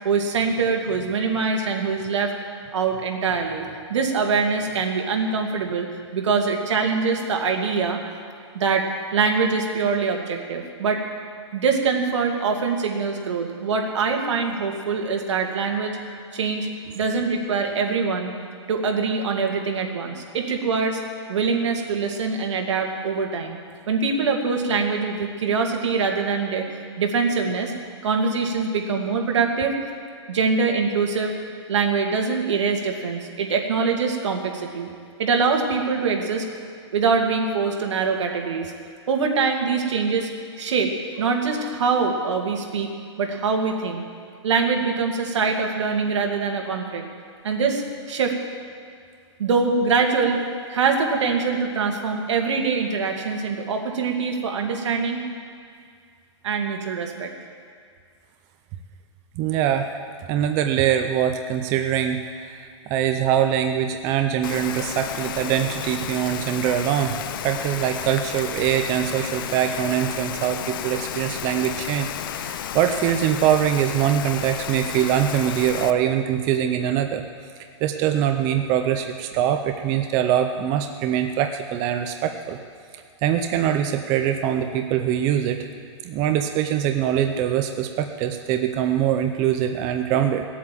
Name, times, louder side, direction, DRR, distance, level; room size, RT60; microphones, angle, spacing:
voice 1, 0.0-2.3 2.7-5.9 6.1-8.0 8.5-8.9 9.1-11.0 11.5-16.0 16.3-16.7 16.9-18.3 18.7-21.0 21.3-23.6 23.9-27.7 28.0-29.8 30.3-31.3 31.7-34.9 35.2-36.4 36.9-38.7 39.1-40.3 40.6-42.9 43.2-44.0 44.4-47.0 47.4-48.4 49.4-50.4 50.7-55.2 56.4-57.3, right 5 dB, 75° right, 2 dB, 2.2 m, -23 dB
voice 2, 59.4-59.9 60.3-77.2 77.8-82.6 83.2-85.7 86.0-90.4, right 10 dB, 20° right, 6 dB, 0.5 m, -23 dB
Rain, 64.4-75.9, left 10 dB, 45° left, 0.6 m, -32 dB
17.5 x 8.3 x 7.5 m, 2.2 s
hypercardioid pair, 165°, 15 cm